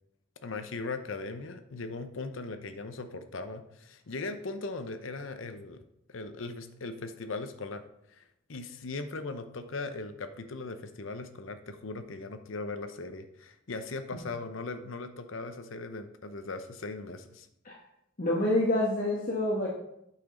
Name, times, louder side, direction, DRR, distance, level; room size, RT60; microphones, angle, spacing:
voice 1, 0.4-5.8 6.1-7.8 8.1-8.2 8.5-17.5, left 3 dB, 75° left, 9 dB, 0.8 m, -39 dB
voice 2, 18.2-19.7, left 1 dB, 45° left, -3 dB, 1.2 m, -27 dB
8.8 x 6.0 x 3.8 m, 0.78 s
head